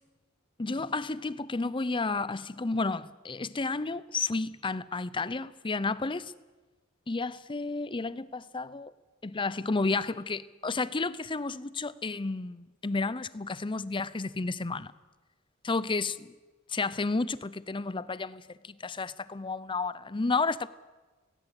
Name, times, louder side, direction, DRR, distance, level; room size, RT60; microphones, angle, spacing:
voice 1, 0.6-6.3 7.1-8.9 9.2-14.9 15.6-16.3 16.7-20.7, left 3 dB, 25° left, 0.6 m, -31 dB
18.0 x 17.5 x 8.3 m
head